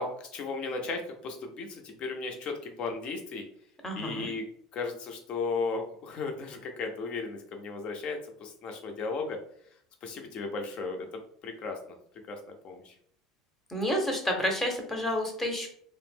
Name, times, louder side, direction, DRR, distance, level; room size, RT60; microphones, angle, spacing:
voice 1, 0.0-3.4 3.9-4.4 4.7-9.4 10.0-11.8 12.3-12.9, left 4 dB, 45° left, 4 dB, 0.6 m, -35 dB
voice 2, 3.8-4.3 13.7-15.7, equal, 15° left, 2 dB, 0.8 m, -30 dB
2.4 x 2.0 x 3.4 m, 0.63 s
hypercardioid pair, 75°, 2 cm